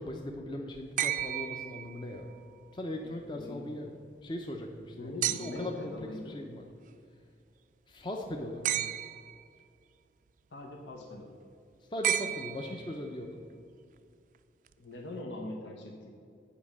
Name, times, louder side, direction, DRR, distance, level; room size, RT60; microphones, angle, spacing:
voice 1, 0.0-2.3 2.7-3.9 4.2-5.9 6.3-6.6 7.9-8.6 11.8-13.3, left 1 dB, 25° left, 1 dB, 0.6 m, -39 dB
sound 1, 1.0-2.4 5.2-5.8 8.6-9.4 12.0-13.1 14.7-14.8, right 11 dB, 45° right, 0.3 m, -33 dB
voice 2, 3.0-3.9 5.0-6.4 10.5-11.4 14.8-16.1, left 2 dB, 90° left, 1 dB, 1.0 m, -42 dB
8.6 x 5.0 x 7.2 m, 2.3 s
head